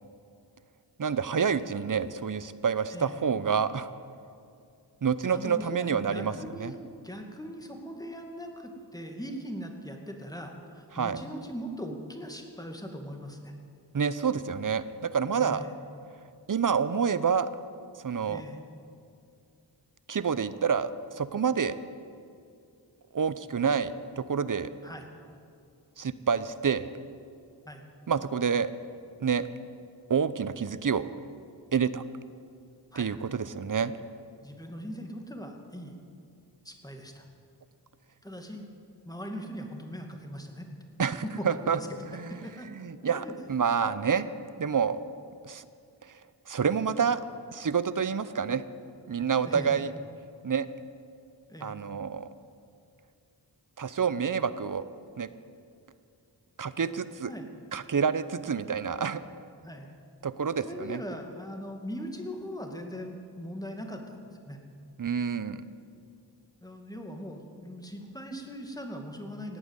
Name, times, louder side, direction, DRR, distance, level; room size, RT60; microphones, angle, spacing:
voice 1, 1.0-3.9 5.0-6.7 10.9-11.2 13.9-15.6 16.5-17.5 18.0-18.4 20.1-21.8 23.1-24.7 26.0-26.9 28.1-28.7 29.2-29.5 30.1-31.1 31.7-32.0 33.0-33.9 41.0-41.8 42.1-44.3 44.6-45.0 45.4-45.6 46.5-47.2 47.5-48.6 49.1-49.9 50.4-50.7 51.6-52.3 53.8-54.8 55.2-55.3 56.6-57.3 57.7-59.2 60.2-61.0 65.0-65.6, right 6 dB, 50° right, 14 dB, 0.7 m, -28 dB
voice 2, 5.3-6.8 7.0-13.5 15.4-15.7 18.3-18.6 24.8-25.1 27.6-27.8 32.9-33.1 34.4-35.9 36.6-37.3 38.2-38.7 39.0-40.7 41.2-41.9 42.3-42.7 43.0-43.3 49.4-49.8 51.5-51.7 57.2-57.5 59.6-59.9 60.6-64.6 66.6-69.6, equal, 10° left, 3 dB, 2.2 m, -40 dB
17.5 x 9.0 x 8.2 m, 2.5 s
wide cardioid pair, 55°, 42 cm